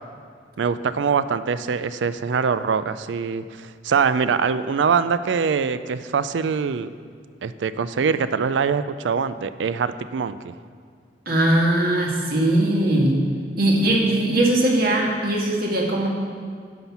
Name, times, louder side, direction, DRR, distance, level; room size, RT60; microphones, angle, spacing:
voice 1, 0.6-6.9 7.4-10.5, right 6 dB, 90° right, 13 dB, 0.4 m, -23 dB
voice 2, 11.3-13.2 13.6-16.1, right 1 dB, 55° right, -1 dB, 1.8 m, -20 dB
11.0 x 5.8 x 5.9 m, 2.1 s
head